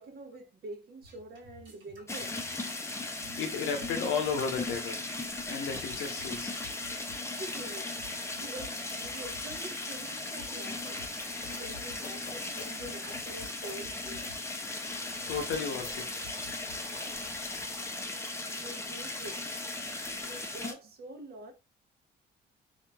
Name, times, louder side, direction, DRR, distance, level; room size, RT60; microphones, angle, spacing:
voice 1, 0.0-2.3 7.1-7.9 8.3-11.0 11.5-14.3 16.9-17.2 17.9-18.2 18.5-19.4 20.2-21.5, right 2 dB, 50° right, 0.7 m, -46 dB
sound 1, 1.0-4.8 5.1-16.8, left 1 dB, 70° right, 1.1 m, -53 dB
sound 2, 2.1-20.7, left 2 dB, 15° left, 0.5 m, -37 dB
voice 2, 3.4-5.1 5.5-6.6 15.0-16.3 16.7-16.9, left 5 dB, 85° left, 0.8 m, -34 dB
sound 3, 10.3-17.9, left 3 dB, 35° left, 0.9 m, -51 dB
2.9 x 2.4 x 2.2 m
cardioid pair, 90°, 20 cm